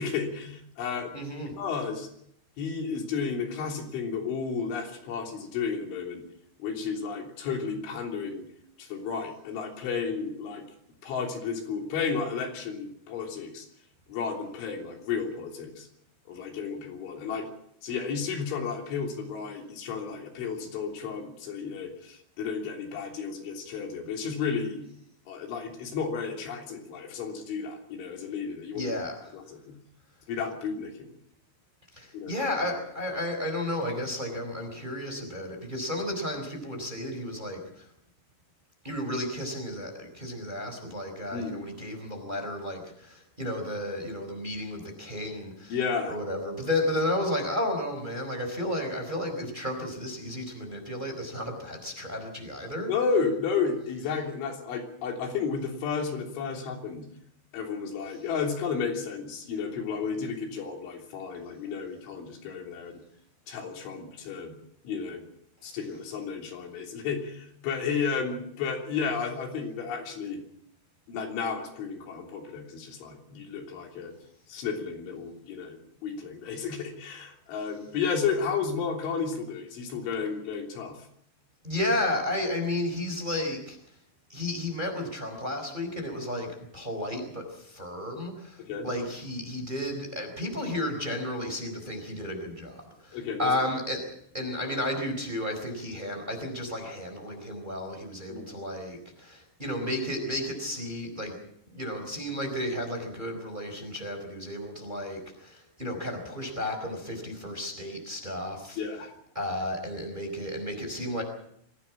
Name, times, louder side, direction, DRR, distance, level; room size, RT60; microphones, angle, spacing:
voice 1, 0.0-1.1 1.6-2.1 2.6-6.2 6.6-8.5 8.8-10.6 11.0-13.7 14.1-15.9 16.3-17.5 17.8-24.8 25.3-28.9 29.3-29.8 30.3-31.1 32.1-32.3 41.3-41.6 45.7-46.1 52.9-57.1 57.5-63.0 63.5-64.5 64.9-65.2 65.6-70.4 71.1-74.1 74.5-81.0 88.6-88.9 93.1-93.5 98.3-98.5 108.8-109.1, left 5 dB, 80° left, 2 dB, 5.7 m, -32 dB
voice 2, 1.1-1.6 28.7-29.2 31.9-37.9 38.8-45.8 46.1-52.9 65.7-65.8 81.6-83.8 84.3-86.5 86.7-94.0 94.3-101.3 101.7-108.8 109.3-111.2, left 1 dB, 10° right, 4 dB, 3.9 m, -33 dB
23.5 x 16.5 x 7.3 m, 0.70 s
omnidirectional pair, 5.4 m